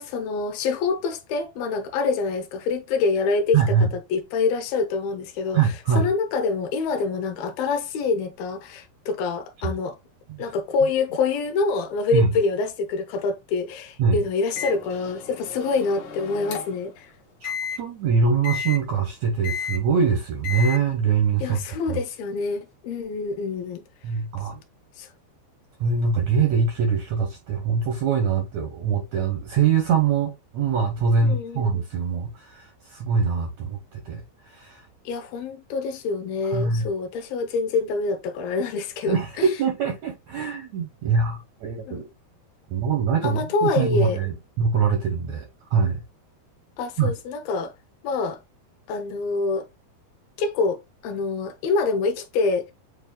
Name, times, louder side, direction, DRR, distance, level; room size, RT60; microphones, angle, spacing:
voice 1, 0.0-3.6 3.9-10.0 10.4-17.1 21.4-23.8 25.0-25.1 31.2-31.7 35.1-39.5 41.9-42.1 43.2-44.2 46.8-47.7 48.0-48.4 48.9-49.7 50.4-52.7, left 4 dB, 75° left, 2.5 m, -26 dB
voice 2, 3.5-3.9 5.5-6.1 10.3-10.4 12.1-12.3 14.0-14.2 17.4-17.5 17.8-21.6 21.9-22.0 24.0-24.6 25.8-34.8 36.5-36.9 39.1-42.1 42.7-45.4 45.7-46.0 47.0-47.1, right 5 dB, 80° right, 1.6 m, -23 dB
Microwave oven, 14.6-16.9 17.4-17.8 18.4-18.8 19.4-19.8 20.4-20.8, left 6 dB, 60° left, 2.3 m, -32 dB
7.3 x 2.7 x 2.2 m
omnidirectional pair, 4.3 m